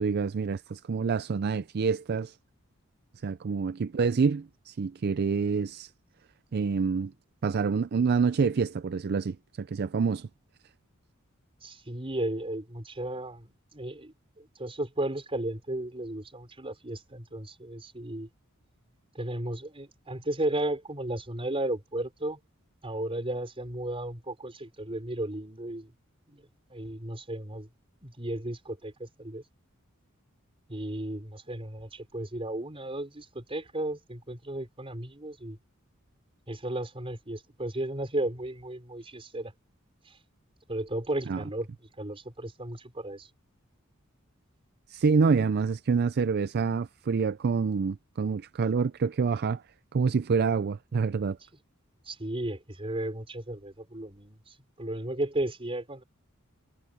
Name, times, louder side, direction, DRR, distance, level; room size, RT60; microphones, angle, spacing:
voice 1, 0.0-2.4 3.2-5.9 6.5-7.1 7.4-10.3 41.3-41.4 44.9-49.6 49.9-51.4, right 5 dB, 50° right, 0.4 m, -27 dB
voice 2, 11.6-18.3 19.1-22.4 22.8-25.9 26.3-27.7 28.0-29.4 30.7-35.6 36.5-39.5 40.1-40.2 40.7-41.7 42.0-43.3 52.1-56.0, right 1 dB, 25° right, 4.5 m, -34 dB
head